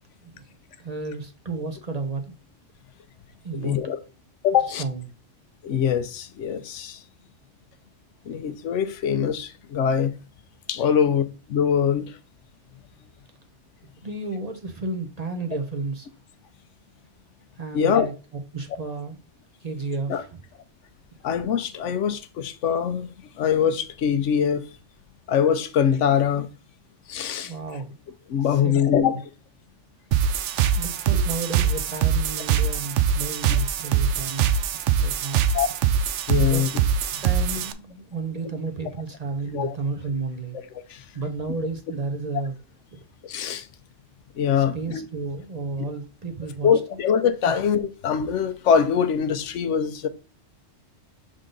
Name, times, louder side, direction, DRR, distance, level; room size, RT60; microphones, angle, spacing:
voice 1, 0.8-2.3 3.4-3.8 4.8-5.0 14.0-16.1 17.6-18.1 18.5-19.2 19.6-20.4 27.4-28.0 28.5-28.8 30.7-34.7 35.0-35.4 36.4-36.7 37.2-40.6 41.1-42.6 44.6-46.7, right 3 dB, 40° right, 0.8 m, -32 dB
voice 2, 3.6-4.0 4.4-4.8 5.6-7.0 8.3-10.1 10.7-12.2 17.7-18.1 20.1-20.2 21.2-24.7 25.3-26.5 27.1-27.5 28.3-29.2 31.1-31.2 35.5-35.7 36.3-36.7 38.4-38.5 39.5-39.8 40.9-41.0 43.2-43.7 44.4-45.1 45.8-45.9 46.6-50.1, left 8 dB, 85° left, 1.0 m, -23 dB
sound 1, 30.1-37.7, right 8 dB, 80° right, 0.9 m, -23 dB
6.6 x 3.8 x 3.8 m
omnidirectional pair, 1.2 m